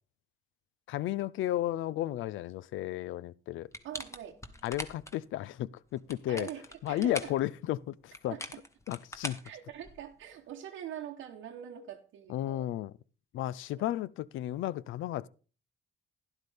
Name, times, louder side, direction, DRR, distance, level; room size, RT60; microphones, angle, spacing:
voice 1, 0.9-3.7 4.6-6.5 6.8-8.3 8.9-9.4 12.3-12.9 13.3-15.3, left 13 dB, 80° left, 0.5 m, -33 dB
sound 1, 3.7-5.2 5.9-7.4 8.1-10.2, left 1 dB, 15° left, 1.1 m, -42 dB
voice 2, 3.8-4.4 6.3-7.3 8.3-8.6 9.4-12.7 13.7-13.8, right 10 dB, 85° right, 1.1 m, -44 dB
12.0 x 11.0 x 3.4 m
cardioid pair, 90°, 20 cm